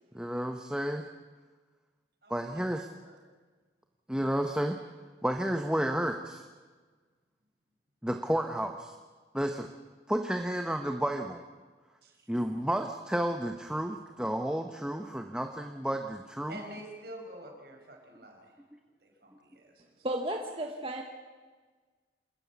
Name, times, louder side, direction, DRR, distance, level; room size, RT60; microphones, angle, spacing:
voice 1, 0.1-1.0 2.3-2.9 4.1-4.8 5.2-6.4 8.0-8.9 9.3-9.7 10.1-11.4 12.3-16.6, right 1 dB, 5° right, 4 dB, 1.0 m, -31 dB
voice 2, 2.2-3.2 12.0-12.3 16.5-18.6 19.0-20.1, right 1 dB, 60° right, 1 dB, 5.7 m, -48 dB
voice 3, 20.0-21.0, right 1 dB, 30° right, 2 dB, 1.5 m, -33 dB
27.5 x 14.0 x 8.5 m, 1.4 s
head